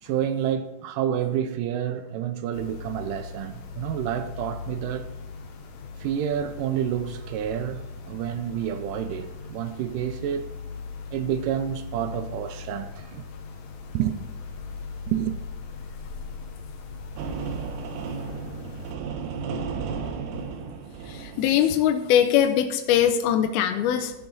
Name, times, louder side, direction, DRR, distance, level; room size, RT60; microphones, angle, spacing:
voice 1, 0.0-5.1 6.0-10.6 11.1-13.3 13.9-14.1 15.1-15.4, right 10 dB, 90° right, 1.8 m, -29 dB
sound 1, 2.5-18.9, left 4 dB, 65° left, 2.1 m, -39 dB
sound 2, 17.2-22.0, right 5 dB, 75° right, 2.1 m, -34 dB
voice 2, 21.1-24.1, left 10 dB, 85° left, 2.5 m, -21 dB
13.5 x 7.1 x 3.9 m
omnidirectional pair, 4.4 m